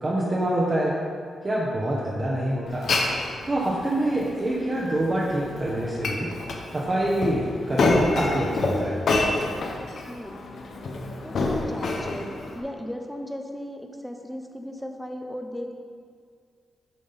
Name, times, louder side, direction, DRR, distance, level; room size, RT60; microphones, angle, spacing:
voice 1, 0.0-1.0 1.4-2.8 3.4-6.3 6.7-9.0, right 1 dB, 30° right, -5 dB, 1.0 m, -25 dB
Glass, 2.7-12.6, left 3 dB, 70° left, 0.9 m, -28 dB
voice 2, 10.1-10.5 10.8-10.9 11.2-12.3 12.5-15.7, equal, 5° left, 3 dB, 0.8 m, -36 dB
9.4 x 3.6 x 5.6 m, 2.1 s
cardioid pair, 100°, 0 cm